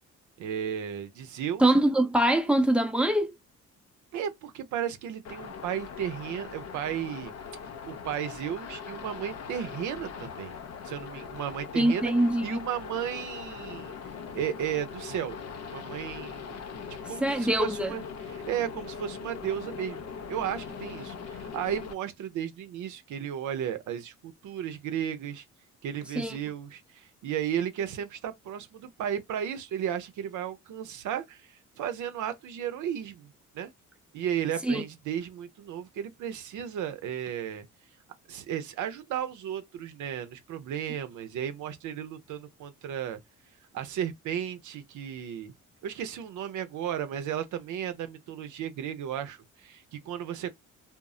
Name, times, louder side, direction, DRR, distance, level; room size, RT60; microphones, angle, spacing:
voice 1, 0.4-1.8 4.1-7.3 7.8-10.6 10.8-12.1 12.4-13.9 14.3-15.4 15.7-16.6 17.1-20.0 20.3-25.4 25.8-33.3 33.5-33.7 34.1-37.7 38.3-43.2 43.7-45.5 45.8-50.5, right 9 dB, 75° right, 0.6 m, -34 dB
voice 2, 1.6-3.3 11.8-12.6 17.2-17.9 26.2-26.4 34.7-34.8, right 1 dB, 5° right, 0.6 m, -23 dB
sound 1, 5.3-21.9, left 6 dB, 55° left, 0.7 m, -41 dB
2.1 x 2.0 x 3.6 m
cardioid pair, 90°, 30 cm